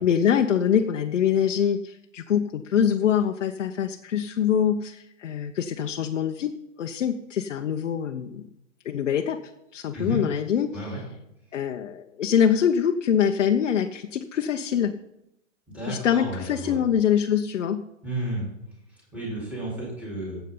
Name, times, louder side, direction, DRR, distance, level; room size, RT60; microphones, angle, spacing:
voice 1, 0.0-6.5 6.8-8.4 8.8-9.4 9.7-11.0 11.5-14.9 15.9-17.8, left 8 dB, 70° left, 3 dB, 1.0 m, -24 dB
voice 2, 15.7-16.8 18.0-18.5 19.1-20.4, right 1 dB, 5° right, -5 dB, 4.0 m, -32 dB
18.5 x 8.3 x 3.9 m, 0.85 s
hypercardioid pair, 165°, 37 cm